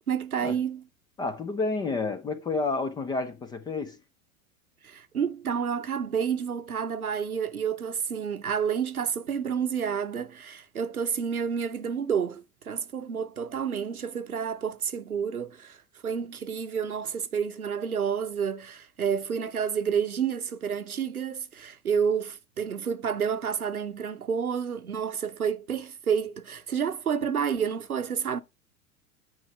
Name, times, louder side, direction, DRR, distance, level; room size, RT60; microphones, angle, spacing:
voice 1, 0.1-0.8 4.8-28.4, right 7 dB, 90° right, 0.8 m, -29 dB
voice 2, 1.2-4.0, left 3 dB, 10° left, 0.3 m, -30 dB
9.5 x 4.7 x 3.3 m
figure-of-eight pair, 85°, 42 cm